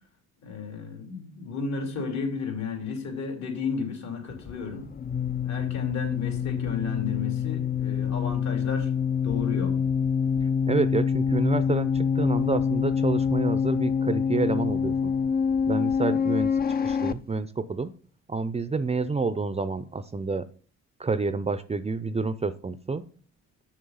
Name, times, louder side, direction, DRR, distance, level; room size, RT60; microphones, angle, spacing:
voice 1, 0.4-4.9 5.4-8.9 9.2-9.8, left 5 dB, 65° left, 2.8 m, -33 dB
sound 1, 4.3-17.1, left 6 dB, 30° left, 0.5 m, -26 dB
voice 2, 10.7-15.1 15.7-16.5 16.8-17.9 18.3-20.4 21.0-23.0, right 4 dB, 20° right, 0.5 m, -28 dB
6.5 x 6.5 x 5.5 m
cardioid pair, 90°, 30 cm